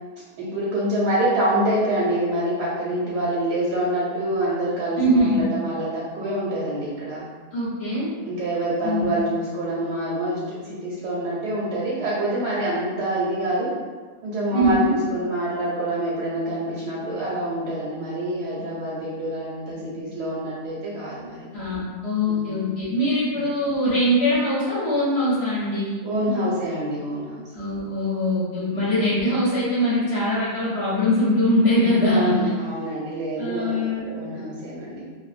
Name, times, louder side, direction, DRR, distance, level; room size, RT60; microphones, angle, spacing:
voice 1, 0.4-7.2 8.2-13.7 14.2-21.5 22.3-22.7 23.3-23.4 26.0-27.4 28.8-29.1 32.1-35.0, right 1 dB, 90° right, -7 dB, 1.2 m, -26 dB
voice 2, 5.0-5.4 7.5-8.1 8.8-9.2 14.5-14.9 21.5-25.9 27.5-32.3 33.4-34.0, left 1 dB, 50° left, -10 dB, 0.9 m, -22 dB
2.6 x 2.0 x 2.4 m, 1.4 s
omnidirectional pair, 1.7 m